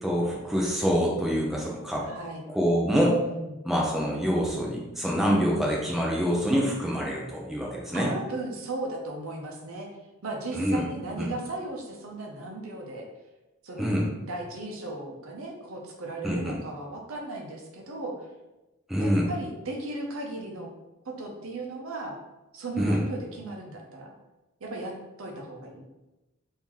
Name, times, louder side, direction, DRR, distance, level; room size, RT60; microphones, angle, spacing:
voice 1, 0.0-2.0 2.5-3.2 3.6-8.1 10.5-10.8 11.2-11.3 13.8-14.1 16.2-16.6 18.9-19.3 22.8-23.0, equal, ahead, -4 dB, 0.5 m, -26 dB
voice 2, 2.0-2.4 3.2-3.6 7.9-9.9 10.2-13.1 13.6-13.9 14.3-18.3 19.0-20.7 21.1-22.2 22.5-24.1 24.6-25.8, right 2 dB, 80° right, 1 dB, 0.7 m, -36 dB
3.1 x 2.7 x 3.7 m, 1.0 s
head